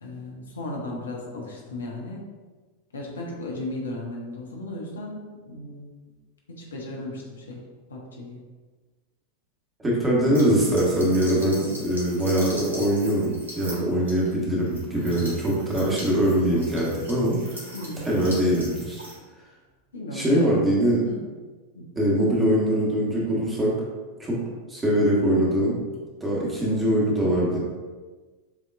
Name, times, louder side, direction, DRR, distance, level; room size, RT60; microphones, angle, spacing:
voice 1, 0.0-2.2 2.9-5.9 6.5-7.6 7.9-8.4 17.7-18.4 19.9-20.5 21.0-21.2 21.7-21.9, left 1 dB, 70° left, -2 dB, 0.9 m, -35 dB
voice 2, 9.8-17.7 18.0-19.0 20.1-21.0 21.9-23.7 24.2-24.4 24.7-25.8 26.2-27.6, equal, 15° right, -5 dB, 1.4 m, -22 dB
sonido agua llave, 10.3-19.2, equal, 70° right, 1.4 m, -41 dB
7.2 x 2.9 x 2.4 m, 1.3 s
figure-of-eight pair, 90°, 0 cm